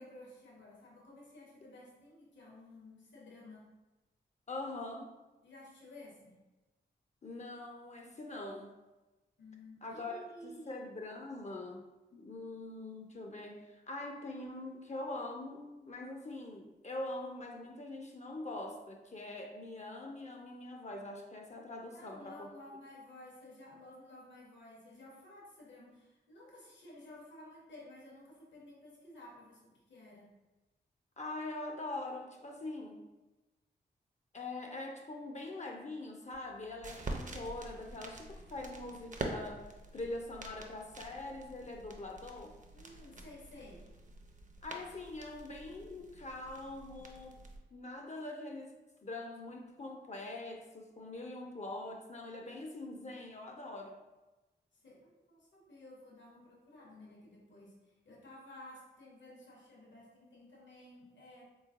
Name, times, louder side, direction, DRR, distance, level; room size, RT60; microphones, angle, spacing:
voice 1, 0.0-3.7 5.4-6.4 9.4-10.9 21.9-30.3 42.7-43.8 54.7-57.8 58.0-61.5, left 1 dB, 75° left, -3 dB, 1.1 m, -54 dB
voice 2, 4.5-5.1 7.2-8.8 9.8-22.5 31.2-33.1 34.3-39.6 39.9-42.6 44.6-47.5 47.7-48.7 49.0-54.0, left 2 dB, 35° left, 2 dB, 0.5 m, -43 dB
sound 1, 36.3-47.6, right 2 dB, 40° right, 0.6 m, -46 dB
3.5 x 3.0 x 2.5 m, 1.1 s
cardioid pair, 40°, 19 cm